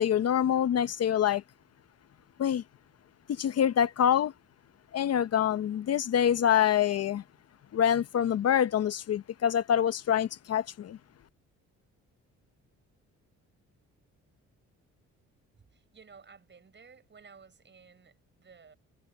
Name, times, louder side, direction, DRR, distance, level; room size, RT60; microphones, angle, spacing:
voice 1, 0.0-1.4 2.4-2.6 3.3-4.3 4.9-7.2 7.7-11.0, left 9 dB, 55° left, 0.8 m, -26 dB
voice 2, 15.7-18.7, right 5 dB, 40° right, 7.0 m, -55 dB
cardioid pair, 90°, 30 cm